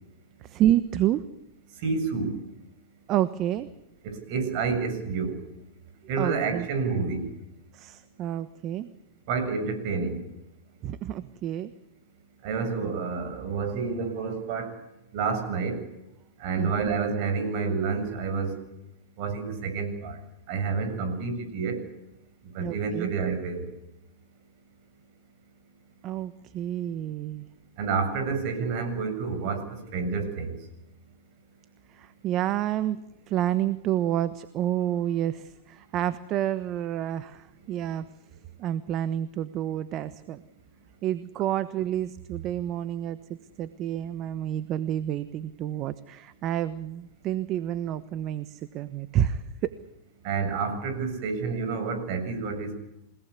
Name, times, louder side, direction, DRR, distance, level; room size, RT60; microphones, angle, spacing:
voice 1, 0.4-1.2 3.1-3.7 6.2-6.7 7.7-8.9 10.8-11.7 16.6-16.9 22.6-23.1 26.0-27.4 31.9-33.0 33.3-38.1 38.6-40.4 41.0-43.2 43.6-49.7, right 11 dB, 40° right, 14 dB, 1.2 m, -29 dB
voice 2, 1.8-2.4 4.0-5.4 6.1-7.3 9.3-10.2 12.4-14.7 15.1-15.8 16.4-18.6 19.2-20.2 20.5-21.8 22.5-23.7 27.8-30.6 50.2-52.8, right 5 dB, 55° right, 8 dB, 7.3 m, -29 dB
28.5 x 18.5 x 8.3 m, 0.89 s
hypercardioid pair, 120°, 0 cm